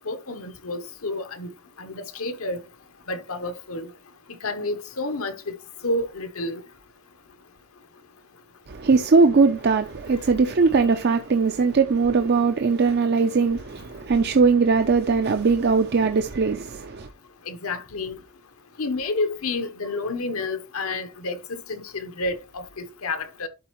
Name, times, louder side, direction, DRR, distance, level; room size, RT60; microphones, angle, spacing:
voice 1, 0.1-1.5 1.8-2.6 3.1-3.9 4.4-5.6 5.8-6.6 17.5-18.2 18.8-23.5, left 2 dB, 75° left, 1.0 m, -30 dB
voice 2, 8.7-17.1, right 4 dB, 50° right, 0.5 m, -20 dB
11.5 x 4.2 x 3.0 m
head